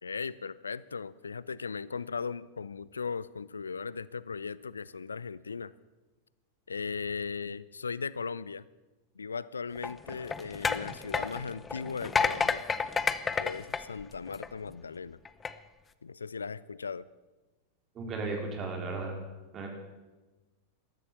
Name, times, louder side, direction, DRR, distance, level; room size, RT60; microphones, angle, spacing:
voice 1, 0.0-5.7 6.7-8.6 9.2-12.6 13.4-15.2 16.0-17.1, left 5 dB, 75° left, 20 dB, 0.4 m, -37 dB
sound 1, 9.8-14.7 15.3-15.5, left 5 dB, 15° left, 0.6 m, -31 dB
voice 2, 17.9-19.2 19.5-19.7, right 3 dB, 30° right, 2 dB, 3.9 m, -35 dB
14.0 x 13.0 x 7.2 m, 1.2 s
figure-of-eight pair, 90°, 0 cm